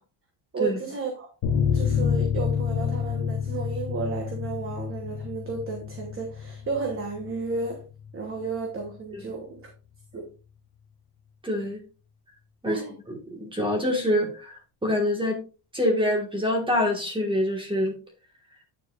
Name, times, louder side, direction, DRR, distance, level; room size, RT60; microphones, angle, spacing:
voice 1, 0.5-1.3 1.7-7.8 8.1-9.7 10.1-10.3 12.6-12.9, right 4 dB, 25° right, 1.1 m, -32 dB
sound 1, 1.4-8.5 8.8-8.9 9.2-9.3, left 7 dB, 50° left, 1.1 m, -29 dB
voice 2, 11.4-11.8 12.6-12.8 13.3-15.4 15.7-18.0, left 1 dB, 10° right, 1.6 m, -25 dB
8.8 x 7.2 x 2.4 m
cardioid pair, 175°, 48 cm